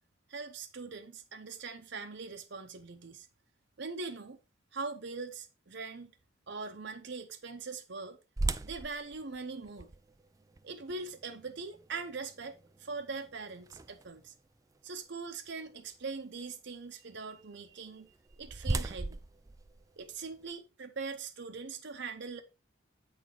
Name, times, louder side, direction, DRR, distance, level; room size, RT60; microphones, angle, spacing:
voice 1, 0.3-3.3 3.8-4.4 4.7-6.1 6.5-8.2 8.6-9.9 10.6-14.3 14.8-19.2 20.0-22.4, right 4 dB, 60° right, 0.9 m, -42 dB
sound 1, 8.4-14.3 14.9-15.0 15.6-15.8 17.9-20.5, right 2 dB, 15° right, 0.4 m, -39 dB
8.8 x 4.1 x 4.8 m
head